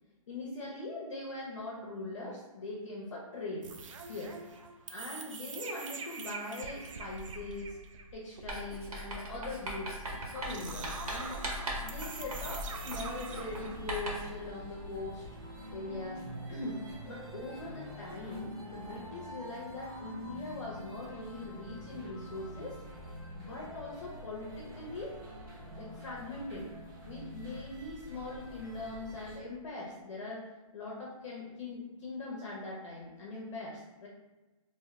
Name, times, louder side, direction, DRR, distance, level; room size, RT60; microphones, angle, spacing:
voice 1, 0.3-3.7 4.0-4.3 4.9-7.8 8.1-10.0 10.3-11.4 11.8-15.2 15.7-16.2 16.5-22.7 23.4-25.2 25.8-26.7 27.1-30.5 30.7-34.1, left 2 dB, 55° left, -4 dB, 0.7 m, -41 dB
sound 1, 3.6-13.9, right 4 dB, 60° right, 0.4 m, -45 dB
Writing, 8.5-14.4, right 1 dB, 80° right, 1.0 m, -40 dB
sound 2, 10.0-29.4, equal, 35° right, 0.7 m, -46 dB
2.8 x 2.2 x 3.0 m, 1.1 s
hypercardioid pair, 160°, 18 cm